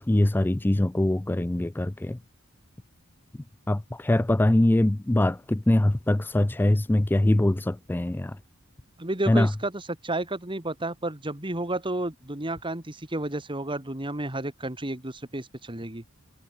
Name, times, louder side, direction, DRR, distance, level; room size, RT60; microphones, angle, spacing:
voice 1, 0.1-2.2 3.7-8.3 9.3-9.5, left 1 dB, 10° left, 0.3 m, -23 dB
voice 2, 9.0-16.0, right 2 dB, 25° right, 2.2 m, -31 dB
head